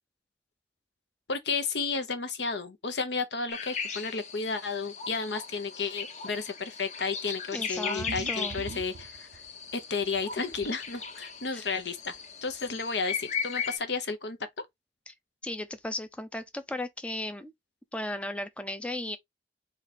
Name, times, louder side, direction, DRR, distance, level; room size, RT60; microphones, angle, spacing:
voice 1, 1.3-9.3 9.7-12.2 12.4-14.4, left 4 dB, 80° left, 1.0 m, -32 dB
sound 1, 3.5-13.8, left 6 dB, 40° left, 0.9 m, -37 dB
voice 2, 7.5-8.6 11.5-11.6 15.1-15.2 15.4-17.5 17.9-19.2, left 1 dB, 5° left, 0.4 m, -36 dB
sound 2, 7.7-9.7 10.0-10.7 11.7-11.8 12.1-12.2 12.5-12.6, right 5 dB, 65° right, 0.3 m, -42 dB
4.1 x 3.1 x 4.1 m
head